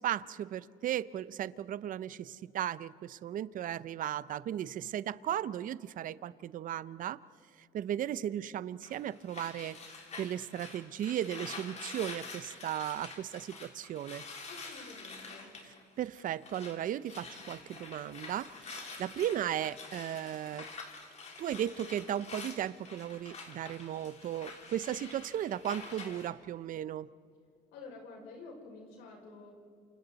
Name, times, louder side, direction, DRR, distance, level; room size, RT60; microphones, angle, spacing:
voice 1, 0.0-7.2 7.7-9.8 10.2-14.2 16.0-20.7 21.4-27.1, right 11 dB, 55° right, 17 dB, 0.6 m, -36 dB
sound 1, 8.8-16.8 17.0-26.3, left 4 dB, 40° left, 3.5 m, -47 dB
voice 2, 14.5-15.5 27.7-29.5, left 3 dB, 90° left, 0 dB, 5.8 m, -49 dB
28.5 x 27.5 x 4.1 m, 2.2 s
cardioid pair, 110°, 17 cm